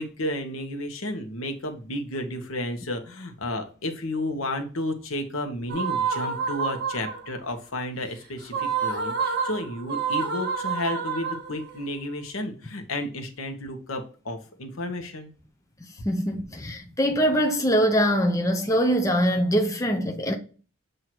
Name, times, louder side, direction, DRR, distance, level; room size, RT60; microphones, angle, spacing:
voice 1, 0.0-15.3, left 1 dB, 75° left, 1.1 m, -32 dB
sound 1, 5.7-7.4 8.4-11.8, right 6 dB, 50° right, 1.7 m, -28 dB
voice 2, 16.0-20.3, equal, 15° left, 0.6 m, -23 dB
7.7 x 2.8 x 4.5 m
head